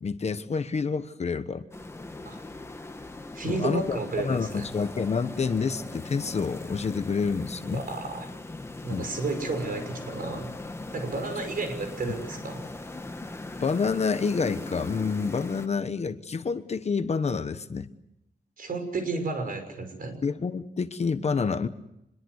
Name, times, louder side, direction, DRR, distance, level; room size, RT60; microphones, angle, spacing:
voice 1, 0.0-1.7 3.4-7.8 8.9-9.1 13.6-17.9 20.2-21.7, left 5 dB, 40° left, 10 dB, 1.1 m, -28 dB
sound 1, 1.7-15.7, left 2 dB, 15° left, 1.3 m, -40 dB
voice 2, 3.3-4.6 7.7-8.3 8.8-10.5 10.9-12.6 18.6-20.2, right 3 dB, 55° right, 6 dB, 6.1 m, -32 dB
26.0 x 22.0 x 8.1 m, 0.85 s
wide cardioid pair, 170°, 17 cm